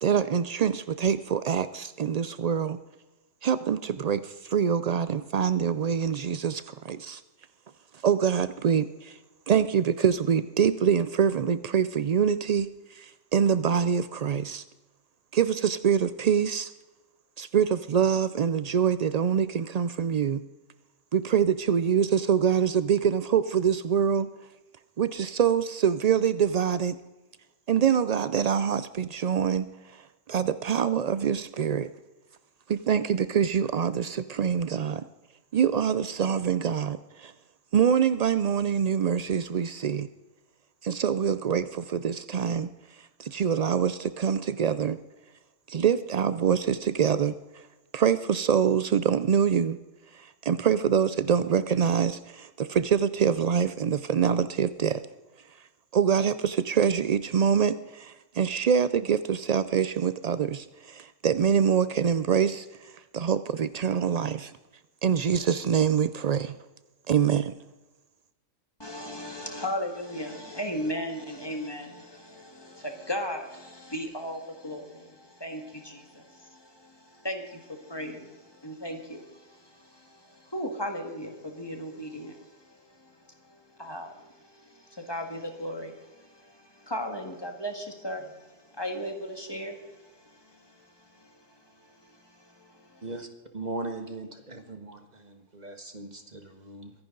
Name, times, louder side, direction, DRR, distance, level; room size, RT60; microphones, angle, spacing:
voice 1, 0.0-2.8 3.4-7.2 8.0-9.2 9.5-14.6 15.3-16.7 17.4-20.4 21.1-24.3 25.0-27.0 27.7-31.9 32.7-35.0 35.5-37.3 37.7-40.1 40.8-42.7 43.0-45.0 45.7-47.6 47.9-49.8 50.1-55.0 55.9-64.5 65.0-66.6 67.1-67.5, right 7 dB, 80° right, 14 dB, 0.3 m, -25 dB
voice 2, 68.8-93.1, equal, 20° left, 4 dB, 1.9 m, -37 dB
voice 3, 93.5-96.9, right 2 dB, 35° right, 6 dB, 1.5 m, -39 dB
23.5 x 10.5 x 3.9 m, 1.1 s
omnidirectional pair, 1.3 m